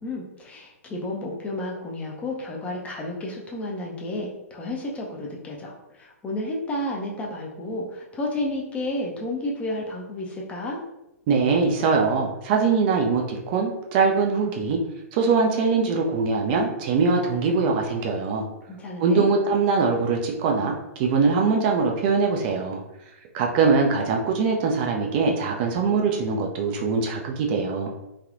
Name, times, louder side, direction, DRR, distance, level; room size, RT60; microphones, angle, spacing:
voice 1, 0.0-10.8 18.7-19.3, left 1 dB, 15° left, -2 dB, 0.5 m, -31 dB
voice 2, 11.3-14.8 15.1-18.5 19.0-22.8 23.3-27.9, right 4 dB, 40° right, 1 dB, 0.4 m, -22 dB
3.3 x 2.2 x 2.5 m, 0.91 s
figure-of-eight pair, 120°, 8 cm